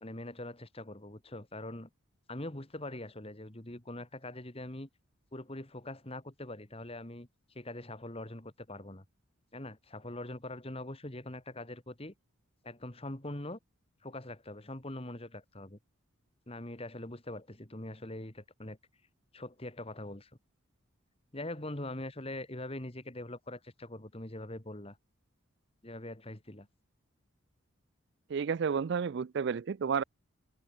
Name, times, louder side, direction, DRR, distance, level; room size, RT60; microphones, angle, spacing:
voice 1, 0.0-1.9 2.3-4.9 5.3-9.0 9.5-12.1 12.6-13.6 14.0-15.8 16.5-18.8 19.3-20.3 21.3-25.0 25.8-26.7, left 1 dB, 30° left, 2.1 m, -43 dB
voice 2, 28.3-30.0, right 6 dB, 55° right, 0.4 m, -31 dB
head